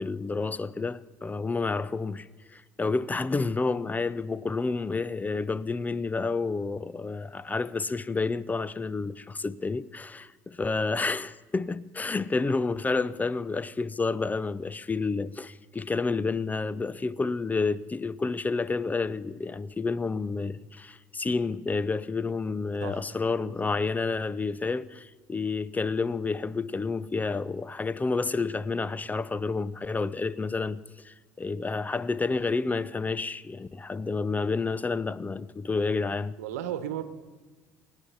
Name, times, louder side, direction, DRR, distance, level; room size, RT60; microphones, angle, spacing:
voice 1, 0.0-36.3, left 4 dB, 20° left, 0.6 m, -30 dB
voice 2, 36.4-37.0, right 10 dB, 80° right, 1.1 m, -34 dB
25.0 x 9.9 x 5.7 m
hypercardioid pair, 65°, 8 cm